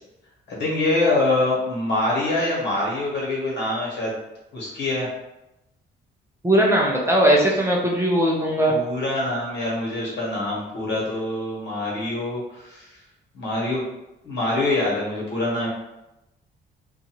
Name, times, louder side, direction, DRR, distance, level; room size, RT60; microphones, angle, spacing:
voice 1, 0.5-4.2 4.5-5.1 8.7-13.0 13.3-13.8 14.2-15.7, left 2 dB, 65° left, -5 dB, 1.3 m, -25 dB
voice 2, 6.4-8.7, right 1 dB, 15° right, -3 dB, 0.5 m, -19 dB
2.5 x 2.3 x 2.9 m, 0.92 s
cardioid pair, 90°, 20 cm